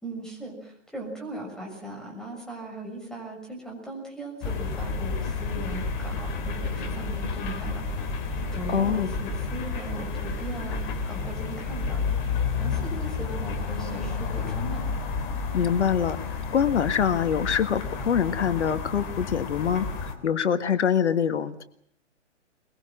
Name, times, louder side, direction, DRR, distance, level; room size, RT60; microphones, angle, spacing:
voice 1, 0.0-7.8 8.5-12.2 12.6-14.8, right 1 dB, ahead, 0 dB, 6.6 m, -38 dB
sound 1, 4.4-20.1, left 4 dB, 30° left, 3.3 m, -31 dB
voice 2, 8.7-9.1 15.5-16.2 16.5-21.6, left 8 dB, 65° left, 10 dB, 1.7 m, -24 dB
23.0 x 23.0 x 7.6 m, 0.69 s
hypercardioid pair, 140°, 37 cm